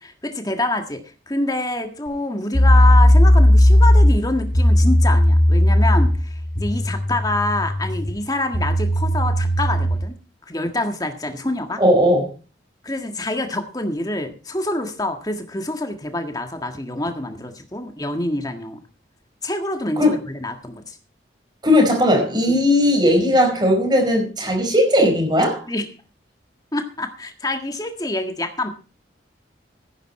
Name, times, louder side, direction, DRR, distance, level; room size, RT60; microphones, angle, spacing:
voice 1, 0.0-1.0 1.3-10.1 10.5-11.8 12.8-18.8 19.4-21.0 22.5-22.6 25.7-25.8 26.7-28.7, left 2 dB, 20° left, 1.6 m, -26 dB
sound 1, 2.1-2.2 2.5-10.1, left 1 dB, 50° left, 6.5 m, -16 dB
voice 2, 11.8-12.3 20.0-20.2 21.6-25.6, left 1 dB, 25° right, 4.8 m, -17 dB
15.0 x 10.5 x 4.3 m
head